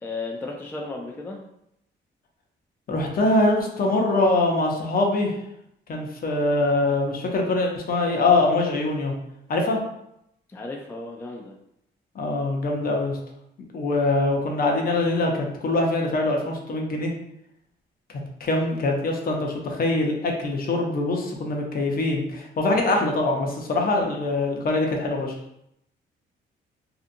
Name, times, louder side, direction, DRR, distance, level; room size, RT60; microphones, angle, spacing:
voice 1, 0.0-1.4 10.5-11.5, left 3 dB, 10° left, 0 dB, 0.3 m, -34 dB
voice 2, 2.9-5.4 5.9-9.1 9.5-9.8 12.2-13.2 13.7-17.1 18.4-25.3, left 2 dB, 50° left, 1 dB, 0.6 m, -23 dB
2.8 x 2.4 x 2.5 m, 0.79 s
cardioid pair, 90°, 20 cm